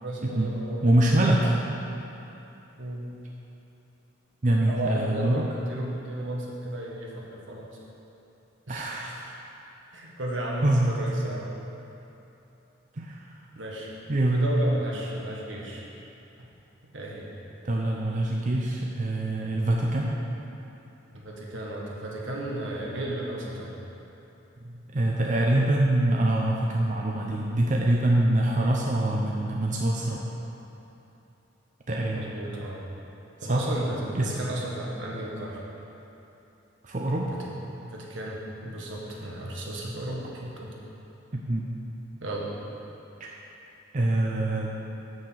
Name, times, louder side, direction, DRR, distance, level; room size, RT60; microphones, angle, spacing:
voice 1, 0.0-1.3 2.8-3.1 4.7-7.7 8.7-8.9 9.9-11.6 13.5-13.9 14.3-15.8 16.9-17.3 21.1-23.7 32.1-32.8 33.4-35.6 37.4-37.5 37.8-40.8 42.2-42.5, right 1 dB, 80° right, -3 dB, 1.6 m, -34 dB
voice 2, 0.8-1.5 4.4-5.4 8.7-9.3 10.6-10.9 12.9-13.3 14.1-14.5 17.6-20.2 24.6-30.3 31.9-32.3 33.5-33.7 34.1-34.3 36.8-37.3 41.3-41.7 43.2-43.3 43.9-44.7, right 1 dB, 40° right, -2 dB, 0.6 m, -25 dB
6.7 x 6.4 x 7.5 m, 3.0 s
head